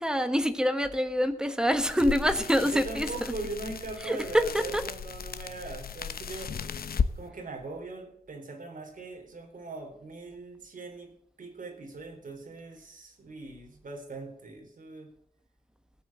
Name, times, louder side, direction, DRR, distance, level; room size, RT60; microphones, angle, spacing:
voice 1, 0.0-3.3 4.0-4.8, equal, 5° right, 9 dB, 1.4 m, -26 dB
sound 1, 1.8-7.1, left 6 dB, 80° left, 0.9 m, -35 dB
voice 2, 2.6-6.5 7.1-11.1 11.4-15.1, right 3 dB, 60° right, 3 dB, 4.2 m, -41 dB
16.5 x 8.7 x 7.5 m, 0.73 s
wide cardioid pair, 170°, 15 cm